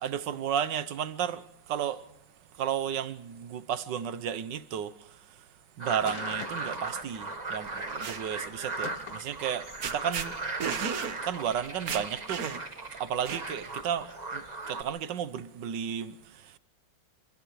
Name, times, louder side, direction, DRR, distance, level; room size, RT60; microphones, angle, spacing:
voice 1, 0.0-2.0 2.5-5.4 5.8-10.4 11.2-12.5 13.0-16.6, right 9 dB, 75° right, 1.6 m, -33 dB
sound 1, 5.8-7.9 8.8-9.3 11.9-12.1, left 7 dB, 65° left, 1.6 m, -44 dB
sound 2, 5.8-14.8, right 3 dB, 25° right, 1.5 m, -38 dB
sound 3, 7.7-8.2 9.4-9.6 9.8-10.3 10.6-11.2 11.5-11.6 11.9-12.8 13.3-13.7, right 6 dB, 55° right, 1.5 m, -33 dB
30.0 x 27.5 x 3.2 m
omnidirectional pair, 2.0 m